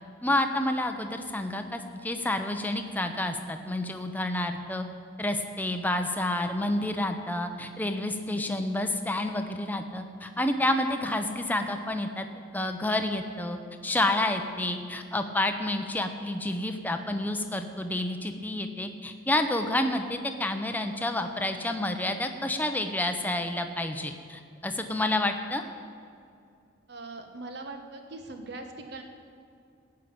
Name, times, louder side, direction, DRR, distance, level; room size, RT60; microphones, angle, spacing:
voice 1, 0.2-4.8 5.2-12.3 12.5-13.6 13.8-25.6, left 1 dB, 10° left, 6 dB, 0.7 m, -29 dB
voice 2, 26.9-29.0, right 2 dB, 60° right, 5 dB, 1.2 m, -41 dB
15.5 x 5.7 x 8.6 m, 2.4 s
head